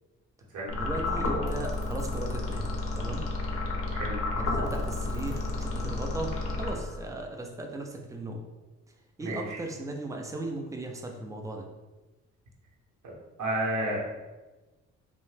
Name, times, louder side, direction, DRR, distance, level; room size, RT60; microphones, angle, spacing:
sound 1, 0.7-7.2, left 2 dB, 50° left, 0.5 m, -31 dB
voice 1, 0.8-3.2 4.3-8.4 9.2-11.7, right 2 dB, 10° right, 2 dB, 0.4 m, -37 dB
voice 2, 9.2-9.6 13.0-13.1 13.4-14.1, right 1 dB, 75° right, -4 dB, 0.9 m, -31 dB
2.7 x 2.1 x 3.2 m, 1.2 s
cardioid pair, 90°, 30 cm